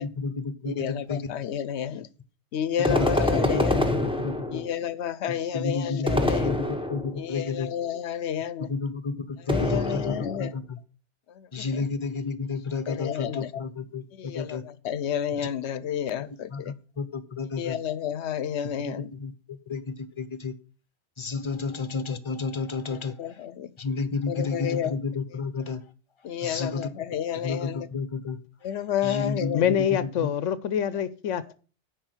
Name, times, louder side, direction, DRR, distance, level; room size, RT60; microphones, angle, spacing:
voice 1, 0.0-1.3 2.8-4.6 5.3-7.7 8.6-10.8 11.5-14.6 16.5-17.8 18.8-20.5 21.2-23.4 23.8-25.8 26.4-26.9 27.4-28.4 29.0-30.3, left 4 dB, 30° left, 0.8 m, -31 dB
voice 2, 0.6-2.1 2.5-3.9 4.5-6.5 7.2-8.7 9.5-10.5 11.3-11.8 12.9-13.5 14.2-16.7 17.6-19.1 22.9-23.7 24.3-24.9 26.2-27.9 28.6-29.7, left 9 dB, 70° left, 0.9 m, -31 dB
sound 1, 2.8-4.8 6.1-7.3 9.5-10.5, left 1 dB, 5° right, 0.9 m, -26 dB
voice 3, 29.5-31.5, left 9 dB, 90° left, 1.0 m, -25 dB
10.5 x 4.8 x 8.0 m
omnidirectional pair, 1.2 m